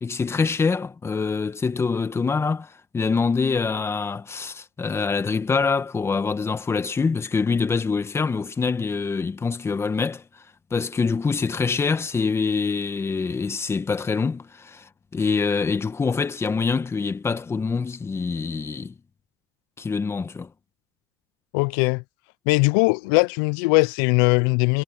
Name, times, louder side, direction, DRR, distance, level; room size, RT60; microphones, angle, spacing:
voice 1, 0.0-10.2 10.7-18.9 19.8-20.5, left 5 dB, 25° left, 1.7 m, -25 dB
voice 2, 21.5-22.0 22.5-24.8, left 28 dB, 85° left, 0.4 m, -20 dB
supercardioid pair, 100°, 11 cm